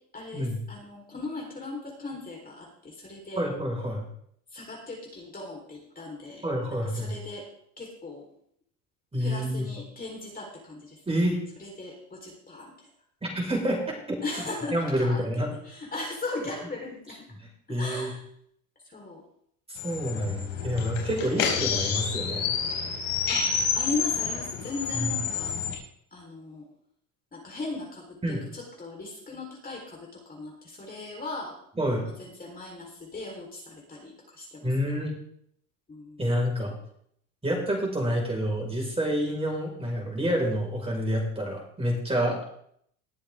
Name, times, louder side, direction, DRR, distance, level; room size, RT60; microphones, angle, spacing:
voice 1, 0.1-3.4 4.5-6.5 6.8-7.5 7.8-8.3 9.2-11.0 11.6-12.9 14.2-15.3 15.6-17.3 17.7-18.3 18.8-19.2 21.4-21.9 23.3-23.5 23.7-25.6 26.1-26.7 27.3-31.6 32.0-34.7 35.9-36.3 42.2-42.4, left 3 dB, 20° left, -1 dB, 4.4 m, -38 dB
voice 2, 3.4-4.0 6.4-7.1 9.1-9.7 11.1-11.4 13.2-13.8 14.1-14.2 14.7-15.5 17.7-18.1 19.7-22.4 25.0-25.1 28.2-28.4 31.8-32.1 34.6-35.1 36.2-36.7 37.4-42.4, equal, 15° right, 0 dB, 5.3 m, -28 dB
sound 1, 19.8-25.7, left 6 dB, 85° left, 4.2 m, -29 dB
20.5 x 7.3 x 3.7 m, 0.66 s
supercardioid pair, 90°, 41 cm